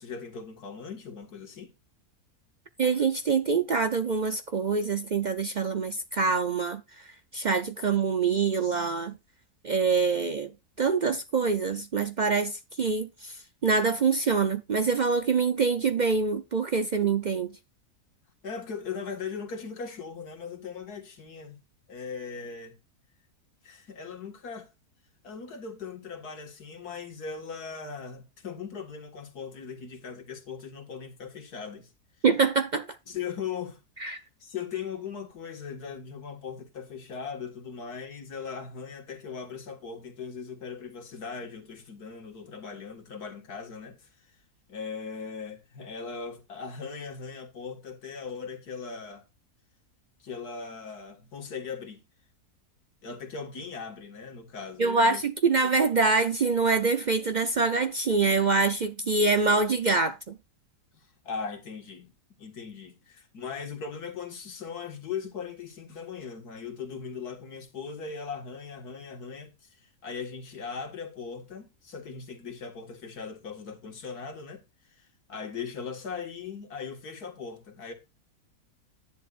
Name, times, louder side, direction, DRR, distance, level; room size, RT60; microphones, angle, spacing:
voice 1, 0.0-1.7 18.4-21.6 21.9-22.8 23.6-24.7 25.2-31.9 33.1-33.8 34.4-44.1 44.7-49.2 50.2-52.0 53.0-55.2 55.6-55.7 60.9-62.1 62.4-69.5 69.8-74.6 75.3-77.9, left 6 dB, 75° left, 2.3 m, -39 dB
voice 2, 2.8-9.2 9.6-10.5 10.8-17.6 32.2-33.0 34.0-34.2 54.8-60.3, right 4 dB, 70° right, 0.4 m, -25 dB
11.5 x 10.5 x 2.5 m
omnidirectional pair, 1.7 m